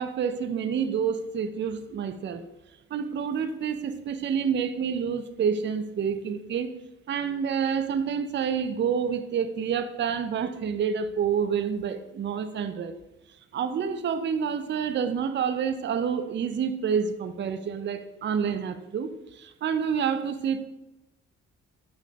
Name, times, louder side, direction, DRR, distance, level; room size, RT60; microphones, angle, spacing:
voice 1, 0.0-2.5 2.9-6.7 7.1-13.0 13.5-20.7, right 7 dB, 35° right, 10 dB, 0.4 m, -28 dB
5.6 x 2.5 x 3.8 m, 0.99 s
hypercardioid pair, 50°, 33 cm